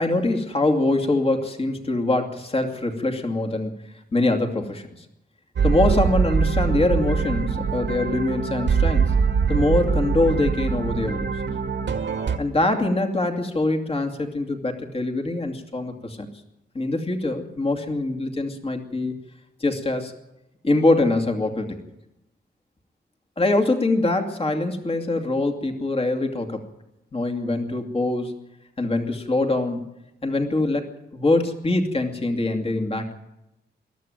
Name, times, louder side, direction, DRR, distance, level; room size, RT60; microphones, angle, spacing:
voice 1, 0.0-3.7 4.1-5.0 5.6-9.2 9.5-11.3 12.4-16.3 16.7-19.1 19.6-20.1 20.6-21.8 23.4-26.6 27.1-28.4 28.8-29.9 30.2-30.9 31.1-33.1, left 2 dB, 30° left, 4 dB, 2.6 m, -23 dB
sound 1, 5.6-12.4, right 6 dB, 80° right, 2.1 m, -23 dB
22.0 x 14.0 x 9.2 m, 0.89 s
wide cardioid pair, 120°, 18 cm